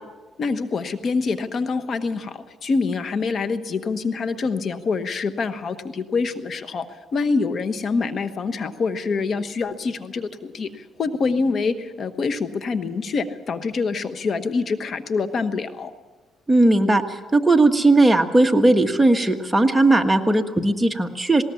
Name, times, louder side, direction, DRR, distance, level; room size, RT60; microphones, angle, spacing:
voice 1, 0.4-15.9, left 4 dB, 50° left, 11 dB, 1.2 m, -25 dB
voice 2, 16.5-21.4, right 2 dB, 10° right, 5 dB, 1.5 m, -17 dB
20.0 x 18.5 x 7.1 m, 1.3 s
cardioid pair, 90°, 0 cm